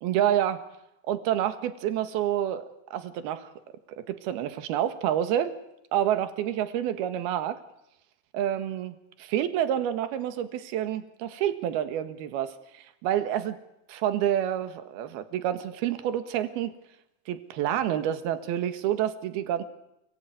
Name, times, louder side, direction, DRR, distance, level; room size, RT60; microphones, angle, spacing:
voice 1, 0.0-0.6 1.1-2.7 2.9-3.5 3.9-5.6 5.9-7.6 8.3-13.6 13.9-16.7 17.3-19.6, right 11 dB, 80° right, 10 dB, 3.5 m, -28 dB
29.5 x 21.5 x 9.3 m, 0.84 s
omnidirectional pair, 4.5 m